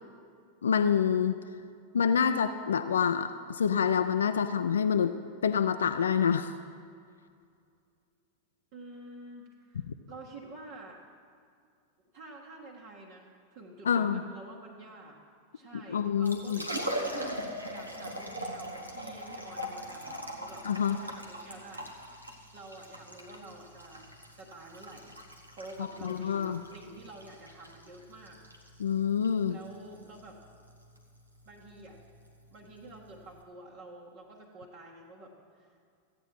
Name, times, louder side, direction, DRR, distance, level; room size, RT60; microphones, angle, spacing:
voice 1, 0.6-1.4 1.9-5.1 5.4-6.5 13.9-14.2 15.9-16.6 20.6-21.0 26.0-26.6 28.8-29.6, left 7 dB, 70° left, 10 dB, 0.4 m, -27 dB
voice 2, 8.7-11.0 12.1-15.2 15.5-17.4 17.7-24.1 24.4-25.2 25.5-28.4 29.5-30.4 31.4-32.0 32.5-35.7, right 2 dB, 45° right, -3 dB, 1.4 m, -49 dB
Liquid, 16.0-33.4, equal, 85° right, 1.0 m, -41 dB
14.5 x 8.8 x 4.7 m, 2.3 s
figure-of-eight pair, 90°, 0 cm